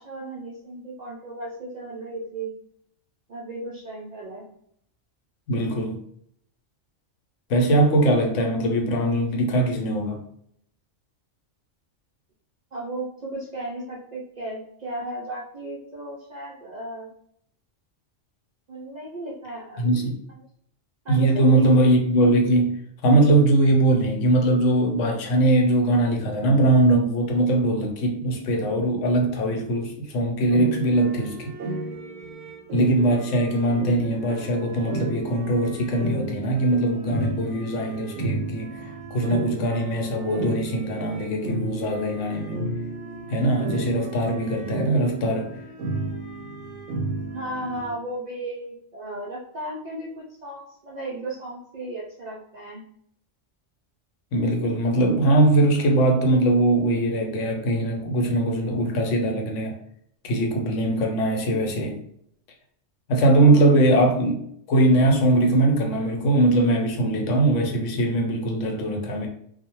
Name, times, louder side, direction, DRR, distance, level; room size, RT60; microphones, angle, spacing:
voice 1, 0.0-2.5 3.3-4.4 12.7-17.1 18.7-19.9 21.0-21.6 47.3-52.8 63.4-63.7, right 1 dB, 60° right, -4 dB, 0.4 m, -35 dB
voice 2, 5.5-6.0 7.5-10.2 19.8-20.2 21.1-31.5 32.7-42.6 43.3-45.5 54.3-59.7 60.2-62.0 63.1-64.3 64.7-69.3, right 1 dB, 85° left, 2 dB, 1.0 m, -21 dB
sound 1, 30.5-47.9, right 2 dB, 90° right, 0.9 m, -33 dB
2.2 x 2.0 x 2.9 m, 0.67 s
omnidirectional pair, 1.2 m